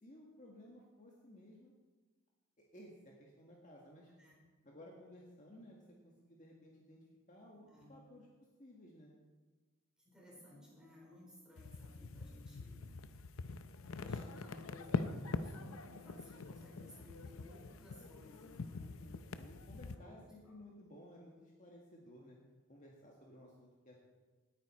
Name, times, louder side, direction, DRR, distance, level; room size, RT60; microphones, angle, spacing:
voice 1, 0.0-1.7 2.6-4.1 4.6-7.0 7.3-8.3 8.6-9.1 18.8-22.4 22.7-24.1, left 1 dB, 35° left, -2 dB, 1.6 m, -57 dB
voice 2, 7.6-8.0 10.0-13.0 13.8-18.9 19.9-20.1, left 1 dB, 5° right, -5 dB, 4.1 m, -58 dB
sound 1, 11.6-19.9, left 4 dB, 75° left, 0.6 m, -44 dB
18.0 x 9.3 x 4.3 m, 1.3 s
head